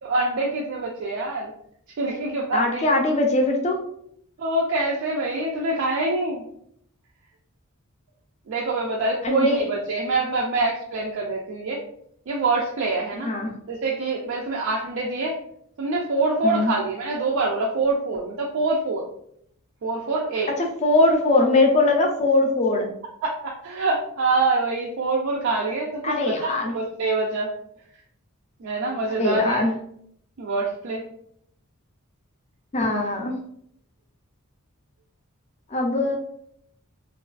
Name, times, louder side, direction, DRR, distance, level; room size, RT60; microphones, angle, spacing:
voice 1, 0.0-1.5 2.0-2.9 4.4-6.4 8.5-11.8 12.3-13.3 13.7-15.4 15.8-19.0 19.8-20.5 23.2-27.5 28.6-29.6 30.4-31.0, right 3 dB, 60° right, -2 dB, 0.4 m, -25 dB
voice 2, 2.5-3.8 9.2-9.6 13.2-13.5 16.4-16.7 20.6-22.9 26.0-26.7 29.2-29.7 32.7-33.4 35.7-36.2, left 2 dB, 30° left, 2 dB, 0.4 m, -21 dB
2.4 x 2.3 x 2.3 m, 0.68 s
head